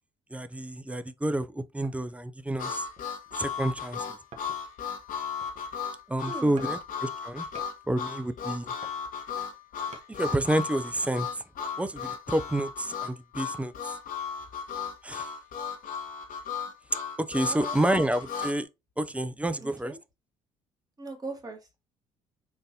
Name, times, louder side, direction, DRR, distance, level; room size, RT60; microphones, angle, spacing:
voice 1, 0.3-2.8 3.4-4.2 6.1-7.5 7.9-8.7 10.1-11.3 11.8-13.9 15.0-15.3 17.2-18.7 19.0-19.9, right 1 dB, 10° right, 0.4 m, -29 dB
sound 1, 1.8-2.3 2.9-3.5 4.3-4.9 5.2-5.9 6.6-6.8 7.1-7.8 8.5-10.1 10.6-10.7, right 3 dB, 45° right, 1.0 m, -51 dB
Harmonica, 2.6-18.6, left 6 dB, 55° left, 0.9 m, -35 dB
voice 2, 6.3-6.8 17.4-17.8 19.6-20.0 21.0-21.8, right 3 dB, 25° right, 1.4 m, -40 dB
3.9 x 2.6 x 2.7 m
hypercardioid pair, 60°, 16 cm